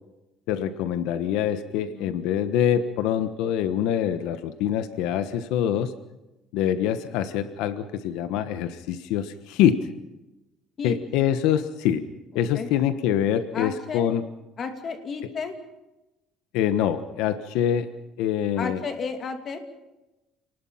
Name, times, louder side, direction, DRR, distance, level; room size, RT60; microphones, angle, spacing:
voice 1, 0.5-5.9 6.5-9.8 10.8-12.0 12.3-14.2 16.5-17.9 18.2-18.8, left 10 dB, 90° left, 11 dB, 1.3 m, -25 dB
voice 2, 1.7-2.1 10.8-11.0 12.5-12.7 13.5-14.2 14.6-15.6 18.6-19.6, left 5 dB, 35° left, 6 dB, 2.6 m, -32 dB
28.5 x 19.5 x 5.8 m, 1.0 s
cardioid pair, 160°, 0 cm